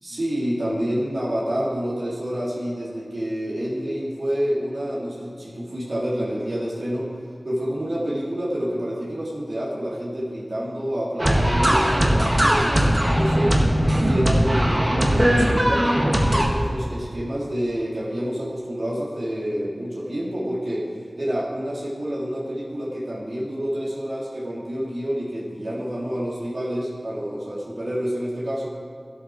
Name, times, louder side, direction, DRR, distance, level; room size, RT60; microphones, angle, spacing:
voice 1, 0.0-7.1 7.4-13.6 14.0-28.7, equal, 65° right, -7 dB, 3.1 m, -28 dB
sound 1, 11.2-16.5, equal, 30° right, 1.7 m, -19 dB
12.5 x 8.7 x 6.4 m, 2.3 s
wide cardioid pair, 50°, 0 cm